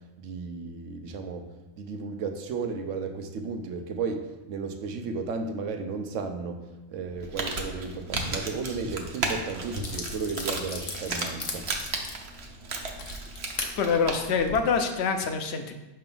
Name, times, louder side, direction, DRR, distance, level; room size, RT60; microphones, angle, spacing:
voice 1, 0.2-1.5 1.8-6.6 6.9-11.7, right 4 dB, 85° right, 6 dB, 1.0 m, -34 dB
Crumpling crinkling, 7.1-14.5, right 3 dB, 60° right, 1.0 m, -35 dB
sound 1, 9.8-13.7 14.3-14.6, left 4 dB, 90° left, 1.2 m, -37 dB
voice 2, 13.8-15.7, left 5 dB, 65° left, 6 dB, 0.8 m, -25 dB
5.7 x 3.3 x 5.3 m, 1.0 s
omnidirectional pair, 1.2 m